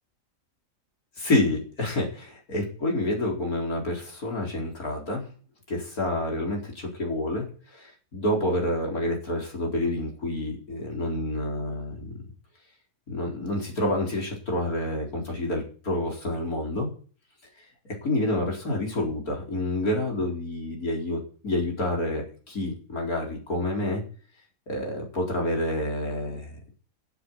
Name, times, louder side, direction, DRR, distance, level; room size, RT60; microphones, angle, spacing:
voice 1, 1.2-5.3 5.7-12.1 13.1-16.9 18.0-24.0 24.7-26.7, left 1 dB, 90° left, 0 dB, 4.9 m, -28 dB
11.5 x 8.2 x 9.6 m, 0.41 s
omnidirectional pair, 1.5 m